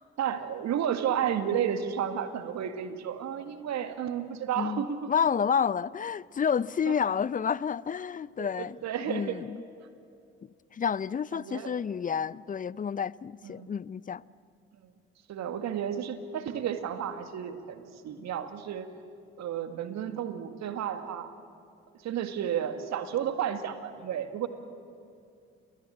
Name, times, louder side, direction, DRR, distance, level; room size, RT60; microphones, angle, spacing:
voice 1, 0.2-5.1 6.9-7.0 8.4-9.4 11.3-11.8 13.4-13.7 15.3-18.9 19.4-21.3 22.0-24.5, right 9 dB, 60° right, 2.0 m, -32 dB
voice 2, 4.6-9.6 10.7-14.2, left 7 dB, 25° left, 0.6 m, -30 dB
29.0 x 20.5 x 8.7 m
hypercardioid pair, 45°, 31 cm